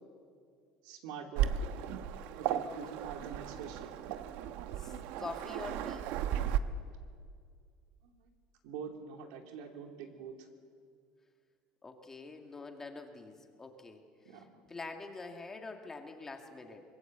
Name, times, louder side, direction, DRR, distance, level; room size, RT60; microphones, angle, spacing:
voice 1, 0.8-1.5 2.4-4.0 8.0-8.3 8.6-10.5 14.2-14.4, right 7 dB, 85° right, 3 dB, 3.2 m, -45 dB
Waves surf, 1.4-6.6, right 10 dB, 65° right, 1.1 m, -35 dB
voice 2, 4.8-6.1 11.8-14.0 14.3-16.8, left 3 dB, 15° left, 4 dB, 2.1 m, -45 dB
24.5 x 21.5 x 8.2 m, 2.1 s
cardioid pair, 155°, 3 cm